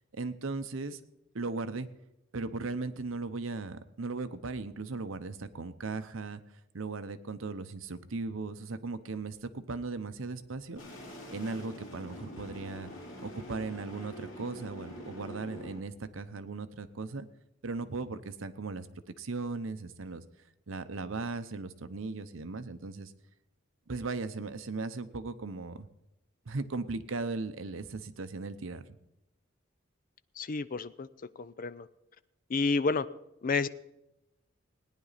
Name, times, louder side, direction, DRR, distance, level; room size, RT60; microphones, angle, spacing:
voice 1, 0.1-1.0 1.3-1.9 2.3-6.4 6.7-10.8 11.3-12.9 13.2-17.3 17.6-18.9 19.2-20.2 20.7-23.1 23.9-25.9 26.5-28.8, right 3 dB, 80° right, 11 dB, 0.8 m, -37 dB
sound 1, 10.8-15.8, equal, 70° left, 3.5 m, -45 dB
voice 2, 30.4-31.1 31.4-31.9 32.5-33.1 33.4-33.7, left 4 dB, 45° left, 15 dB, 0.5 m, -30 dB
18.0 x 10.0 x 4.1 m, 0.89 s
head